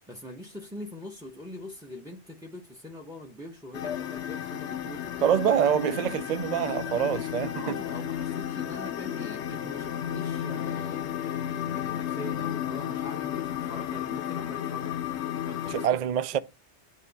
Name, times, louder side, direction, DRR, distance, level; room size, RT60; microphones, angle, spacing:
voice 1, 0.1-5.3 6.8-16.0 16.3-16.4, left 1 dB, 5° right, 0.8 m, -43 dB
sound 1, 3.7-15.9, left 10 dB, 75° left, 0.9 m, -33 dB
sound 2, 3.8-6.8, left 8 dB, 45° left, 0.4 m, -45 dB
voice 2, 5.2-7.8 15.7-16.4, right 9 dB, 60° right, 0.4 m, -25 dB
9.4 x 3.4 x 4.0 m
omnidirectional pair, 1.2 m